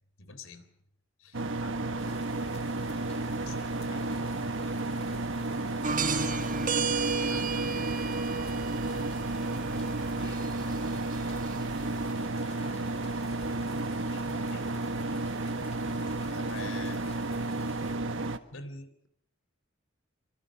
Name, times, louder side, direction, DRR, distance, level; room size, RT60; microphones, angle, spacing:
voice 1, 0.2-0.7 1.2-1.4 3.5-3.6 6.1-6.7 16.2-17.0 18.5-19.1, left 3 dB, 75° left, 11 dB, 3.6 m, -45 dB
sound 1, 1.3-18.4, right 2 dB, 65° right, 1.5 m, -32 dB
voice 2, 1.6-2.1 3.5-4.6 5.9-8.5 9.4-11.0 11.3-12.2 12.5-13.3 14.1-14.8, left 2 dB, 60° left, 4 dB, 7.7 m, -51 dB
sound 2, 2.0-18.0, left 4 dB, 30° left, 2.7 m, -53 dB
sound 3, 5.8-12.1, right 4 dB, 40° right, 1.7 m, -33 dB
25.0 x 25.0 x 6.2 m, 0.67 s
head